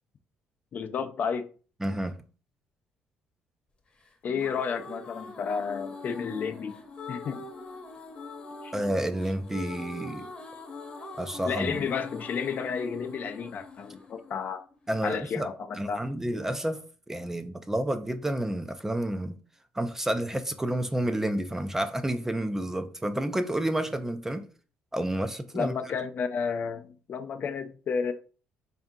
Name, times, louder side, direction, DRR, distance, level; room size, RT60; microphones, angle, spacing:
voice 1, 0.7-1.5 4.2-6.8 7.1-7.4 8.6-8.7 11.4-14.6 15.0-16.0 25.5-28.1, left 6 dB, 50° left, 0.4 m, -31 dB
voice 2, 1.8-2.2 8.7-10.3 11.2-11.9 14.9-15.5 15.7-19.4 19.7-24.5 24.9-25.7, right 1 dB, 10° right, 0.4 m, -30 dB
sound 1, 4.1-15.1, left 3 dB, 25° left, 0.9 m, -43 dB
3.5 x 2.7 x 3.6 m
cardioid pair, 100°, 4 cm